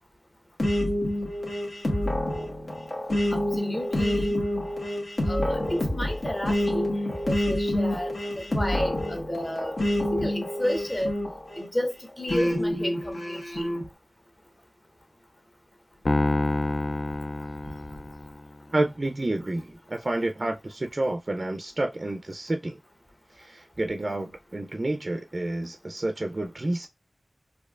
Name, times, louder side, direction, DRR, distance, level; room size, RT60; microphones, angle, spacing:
sound 1, 0.6-11.7 12.3-13.8, left 1 dB, 70° left, 1.4 m, -27 dB
voice 1, 3.3-4.4 5.3-6.9 7.3-8.1 8.4-11.2 11.6-13.7, equal, 25° left, 1.2 m, -31 dB
Piano, 16.1-18.5, left 2 dB, 50° left, 0.4 m, -27 dB
voice 2, 18.7-22.8 23.4-26.9, right 2 dB, 45° right, 0.4 m, -29 dB
4.3 x 2.7 x 2.3 m
wide cardioid pair, 75°, 0 cm